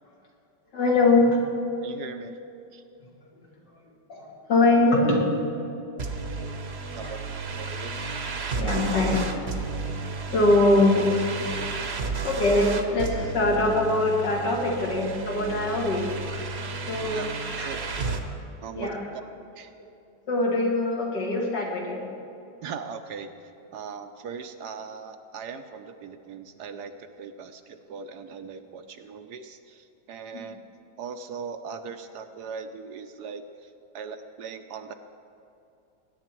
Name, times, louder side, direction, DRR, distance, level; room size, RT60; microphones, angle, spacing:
voice 1, 0.7-1.4 4.1-5.2 6.0-6.1 6.4-6.5 7.0-7.1 8.6-9.2 10.3-11.2 12.2-16.1 16.9-17.3 17.6-17.7 18.7-19.0 20.3-22.0 30.3-30.4, left 2 dB, 70° left, -2 dB, 2.8 m, -22 dB
voice 2, 1.8-2.4 2.7-2.8 6.9-7.2 7.6-7.9 17.1-17.8 18.6-18.9 19.6-19.7 22.6-23.3 23.7-30.6 31.0-34.9, right 6 dB, 70° right, 8 dB, 1.1 m, -39 dB
sound 1, 6.0-18.2, right 4 dB, 45° right, 1.0 m, -32 dB
20.5 x 9.8 x 4.5 m, 2.7 s
omnidirectional pair, 2.0 m